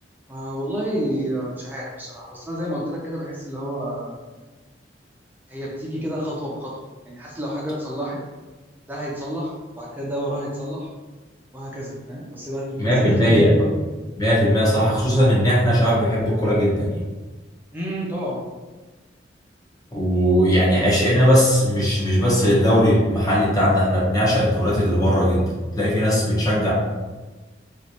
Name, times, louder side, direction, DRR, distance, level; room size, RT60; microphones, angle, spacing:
voice 1, 0.3-4.2 5.5-6.7 7.1-8.2 8.9-10.9 11.5-13.7 17.7-18.4, equal, 10° right, -5 dB, 0.5 m, -29 dB
voice 2, 12.8-13.5 14.1-17.0 19.9-25.5 25.8-26.7, equal, 20° left, -6 dB, 0.9 m, -18 dB
3.1 x 2.5 x 2.8 m, 1.2 s
head